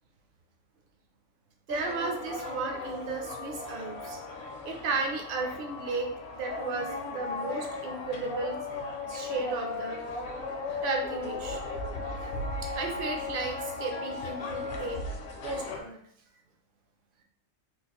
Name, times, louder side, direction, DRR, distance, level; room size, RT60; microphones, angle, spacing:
sound 1, 1.7-15.8, left 3 dB, 60° left, 0.8 m, -36 dB
voice 1, 1.7-4.2 4.6-8.6 9.1-10.0 10.8-11.6 12.8-15.0 15.4-16.0, right 3 dB, 55° right, 2 dB, 0.7 m, -34 dB
3.8 x 2.4 x 2.9 m, 0.68 s
omnidirectional pair, 1.4 m